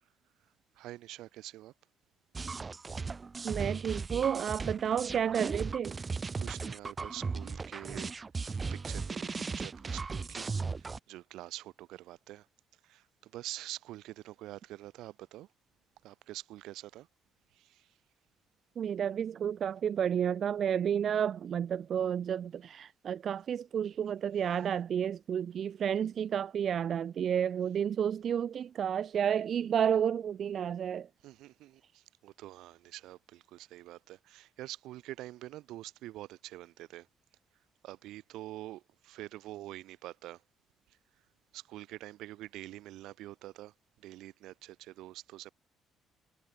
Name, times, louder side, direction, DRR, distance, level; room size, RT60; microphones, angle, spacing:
voice 1, 0.7-1.7 6.4-10.5 10.8-12.5 12.8-15.5 16.0-17.1 17.5-18.0 31.2-37.1 37.8-40.4 40.9-41.0 41.5-45.5, right 15 dB, 85° right, 4.4 m, -46 dB
sound 1, 2.4-11.0, right 4 dB, 30° right, 0.7 m, -37 dB
voice 2, 3.4-6.0 18.8-31.1, right 8 dB, 55° right, 1.1 m, -31 dB
cardioid pair, 100°, 0 cm